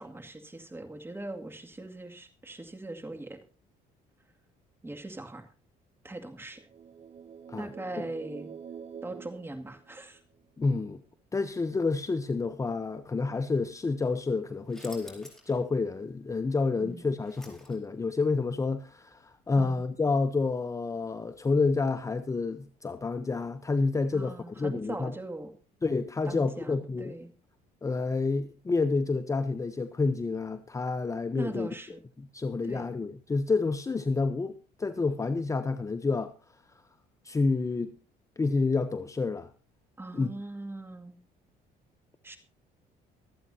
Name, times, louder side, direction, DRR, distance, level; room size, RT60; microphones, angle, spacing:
voice 1, 0.0-3.4 4.8-5.5 6.0-6.7 7.6-8.5 9.0-10.2 16.8-17.0 19.6-19.8 24.1-25.5 26.3-27.3 31.3-32.0 32.6-32.9 40.0-41.1 42.2-42.4, right 2 dB, 15° right, 2.2 m, -40 dB
sound 1, 6.5-10.4, right 7 dB, 40° right, 0.6 m, -46 dB
voice 2, 10.6-11.0 11.3-25.1 25.8-27.1 27.8-31.7 32.2-34.5 34.8-36.3 37.2-37.9 38.4-39.5 40.1-40.3, left 3 dB, 20° left, 0.7 m, -29 dB
sound 2, 14.7-15.6 16.0-16.1 16.8-18.1, left 1 dB, 5° left, 4.4 m, -51 dB
24.5 x 8.7 x 2.7 m
cardioid pair, 110°, 17 cm